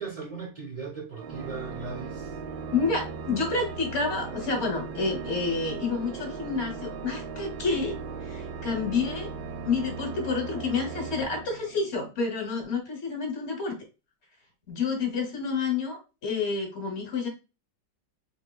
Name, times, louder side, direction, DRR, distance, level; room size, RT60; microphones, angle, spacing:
voice 1, 0.0-2.3, right 5 dB, 55° right, 0.4 m, -38 dB
Organ, 1.2-12.1, right 5 dB, 75° right, 1.0 m, -38 dB
voice 2, 2.7-9.3 9.6-13.8 14.7-17.3, left 4 dB, 45° left, 1.0 m, -29 dB
3.7 x 2.8 x 2.2 m
omnidirectional pair, 2.0 m